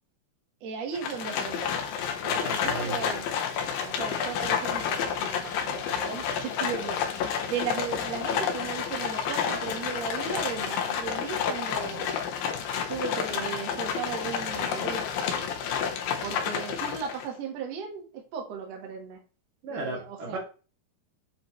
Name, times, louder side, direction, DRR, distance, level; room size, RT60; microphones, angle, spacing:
voice 1, 0.6-1.8 2.2-3.3 3.8-7.1 7.5-12.2 12.9-15.5 16.2-19.2 19.7-20.4, right 6 dB, 75° right, 1.5 m, -36 dB
Livestock farm animals working animals, 0.9-17.3, left 7 dB, 75° left, 2.1 m, -30 dB
voice 2, 2.2-3.1 19.6-20.4, right 2 dB, 55° right, 3.4 m, -35 dB
8.2 x 5.1 x 3.1 m
omnidirectional pair, 5.3 m